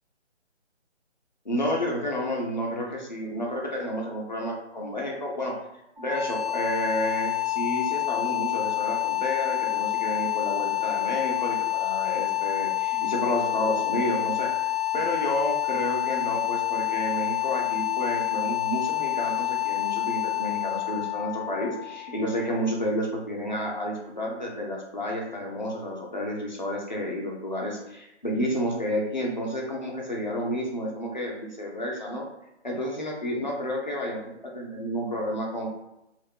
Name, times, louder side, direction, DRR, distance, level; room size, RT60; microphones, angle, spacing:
voice 1, 1.4-5.5 6.0-14.5 14.9-32.3 32.6-35.7, equal, 40° left, -2 dB, 0.4 m, -30 dB
sound 1, 6.0-22.9, left 15 dB, 45° right, 0.4 m, -28 dB
2.9 x 2.1 x 2.3 m, 0.89 s
hypercardioid pair, 175°, 35 cm